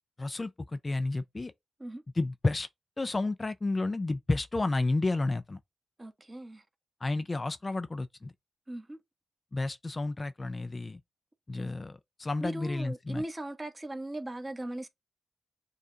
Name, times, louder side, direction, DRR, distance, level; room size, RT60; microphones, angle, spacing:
voice 1, 0.2-1.5 2.2-2.7 3.0-5.6 7.0-8.3 9.5-11.0 11.5-13.2, left 2 dB, 30° left, 0.4 m, -31 dB
voice 2, 6.0-6.6 8.7-9.0 11.5-11.7 12.4-14.9, right 1 dB, 25° right, 1.1 m, -38 dB
6.5 x 2.4 x 2.8 m
cardioid pair, 65°, 0 cm